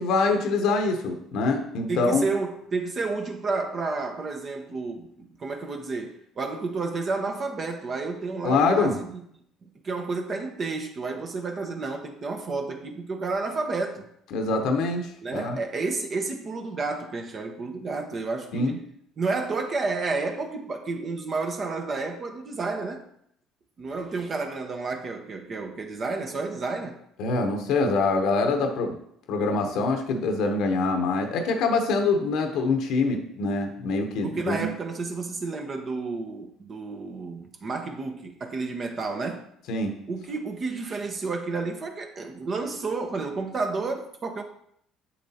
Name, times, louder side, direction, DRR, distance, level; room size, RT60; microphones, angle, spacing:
voice 1, 0.0-2.2 8.4-9.0 14.3-15.6 18.5-18.8 27.2-28.9 29.3-34.7 39.7-40.0, left 3 dB, 65° left, 0.9 m, -24 dB
voice 2, 1.9-9.2 9.8-14.1 15.2-18.8 19.2-23.0 23.8-27.0 34.2-39.4 40.1-44.4, right 3 dB, 45° right, 1.0 m, -31 dB
7.3 x 7.2 x 2.8 m
hypercardioid pair, 60°, 0 cm